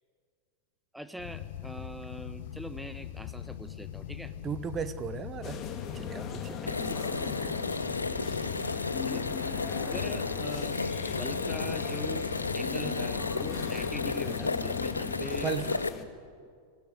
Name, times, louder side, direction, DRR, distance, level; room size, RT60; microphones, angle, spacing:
voice 1, 0.9-4.3 6.6-7.6 8.0-8.2 9.0-9.3 9.8-16.1 16.4-16.5, equal, ahead, 11 dB, 1.2 m, -43 dB
sound 1, 1.2-15.5, left 11 dB, 55° left, 1.0 m, -41 dB
voice 2, 4.4-5.6 5.9-6.6 15.4-15.8, right 7 dB, 25° right, 13 dB, 1.0 m, -35 dB
sound 2, 5.4-16.0, left 7 dB, 30° left, 2.1 m, -39 dB
sound 3, 6.7-15.9, left 3 dB, 80° left, 0.6 m, -33 dB
23.5 x 15.5 x 9.4 m, 2.2 s
figure-of-eight pair, 90°, 0 cm